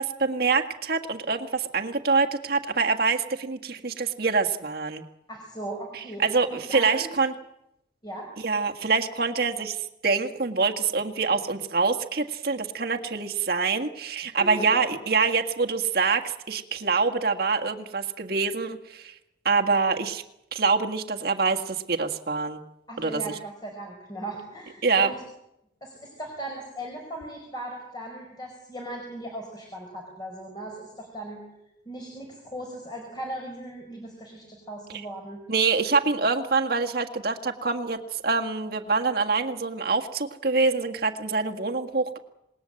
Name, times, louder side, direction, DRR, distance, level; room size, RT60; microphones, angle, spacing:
voice 1, 0.0-5.0 5.9-7.3 8.4-19.1 19.4-20.2 20.5-22.6 23.0-23.3 24.8-25.1 35.5-42.2, right 4 dB, 55° right, 4 dB, 1.7 m, -25 dB
voice 2, 5.3-6.2 6.5-7.1 8.0-8.3 14.4-14.5 14.8-14.9 22.9-25.2 25.8-31.4 31.8-35.4, right 1 dB, 25° left, 2 dB, 4.6 m, -38 dB
27.5 x 20.0 x 7.7 m, 0.88 s
head